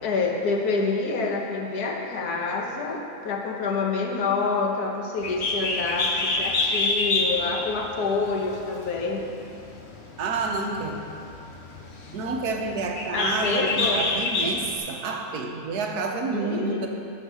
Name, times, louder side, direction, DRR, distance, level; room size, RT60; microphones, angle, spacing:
voice 1, 0.0-9.3 13.1-14.0 16.3-16.9, left 4 dB, 75° left, 1 dB, 1.6 m, -27 dB
Bird, 5.2-14.8, left 3 dB, 50° left, 1.1 m, -28 dB
voice 2, 10.2-11.0 12.1-16.9, right 3 dB, 80° right, 3 dB, 1.4 m, -29 dB
11.0 x 4.7 x 6.8 m, 2.6 s
omnidirectional pair, 1.7 m